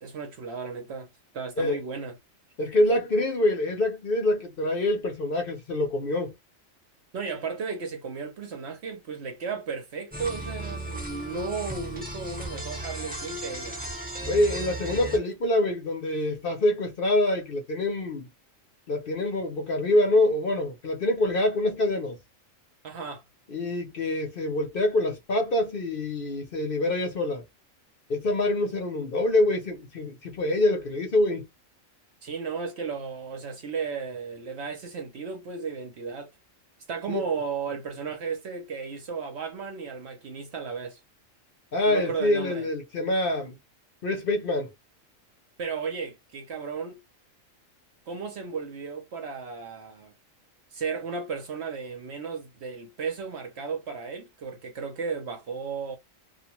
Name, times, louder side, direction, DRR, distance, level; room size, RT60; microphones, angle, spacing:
voice 1, 0.0-1.1 1.3-2.2 7.1-13.8 22.8-23.2 32.2-36.3 36.9-41.0 41.9-42.7 45.6-47.0 48.1-50.1 50.7-56.0, right 5 dB, 60° right, 0.9 m, -34 dB
voice 2, 2.6-6.3 14.3-18.3 18.9-22.2 23.5-27.4 28.1-31.4 37.1-37.2 41.7-43.6 44.0-44.7, left 1 dB, 50° left, 0.8 m, -25 dB
sound 1, 10.1-15.2, right 1 dB, 10° right, 0.7 m, -36 dB
2.4 x 2.2 x 2.8 m
omnidirectional pair, 1.4 m